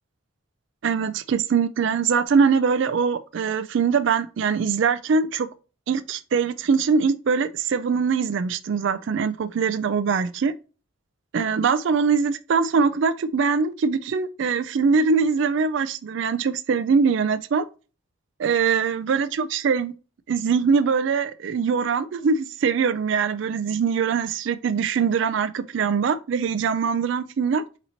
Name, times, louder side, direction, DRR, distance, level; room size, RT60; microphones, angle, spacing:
voice 1, 0.8-5.5 5.9-10.5 11.3-17.7 18.4-19.9 20.3-27.6, right 5 dB, 65° right, 0.3 m, -22 dB
4.0 x 2.8 x 4.3 m
head